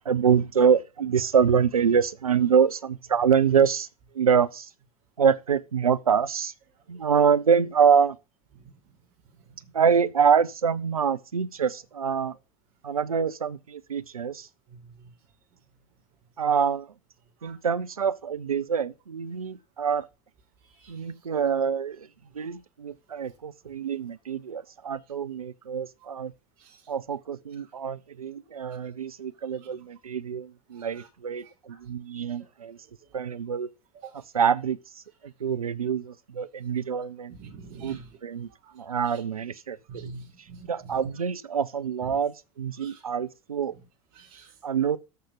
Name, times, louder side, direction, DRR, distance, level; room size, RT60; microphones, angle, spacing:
voice 1, 0.0-3.9 4.1-4.7 5.2-6.5 6.9-8.2 9.7-12.3 12.8-14.5 16.4-16.9 17.4-20.1 20.9-22.1 22.3-26.3 26.9-32.8 33.1-33.7 34.3-37.3 37.8-38.5 38.7-40.1 40.7-43.8 44.6-45.0, right 7 dB, 90° right, 0.8 m, -25 dB
voice 2, 8.5-8.9 9.4-9.7 14.7-15.1 17.4-17.6 20.6-21.0 22.5-22.6 26.0-26.1 26.6-26.8 27.5-27.7 29.5-29.7 30.7-31.1 31.4-31.8 32.4-32.5 33.0-33.3 33.9-34.2 37.3-38.2 38.6-39.2 39.9-41.1 42.0-42.2 42.7-43.0 43.7-43.9 44.1-44.6, right 4 dB, 55° right, 4.5 m, -47 dB
13.5 x 5.7 x 5.2 m
hypercardioid pair, 85°, 18 cm